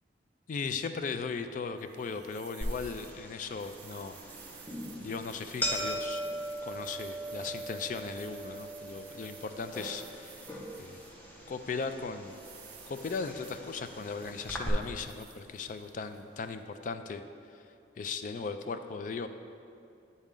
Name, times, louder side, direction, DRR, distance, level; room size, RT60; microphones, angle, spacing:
voice 1, 0.5-4.2 5.0-6.2 6.6-11.0 11.5-12.3 12.9-17.2 18.0-19.3, left 5 dB, 45° left, 9 dB, 0.3 m, -37 dB
sound 1, 0.9-17.0, right 9 dB, 65° right, 0.4 m, -55 dB
sound 2, 2.6-14.7, right 1 dB, 10° left, 0.6 m, -40 dB
8.9 x 4.1 x 3.7 m, 2.5 s
head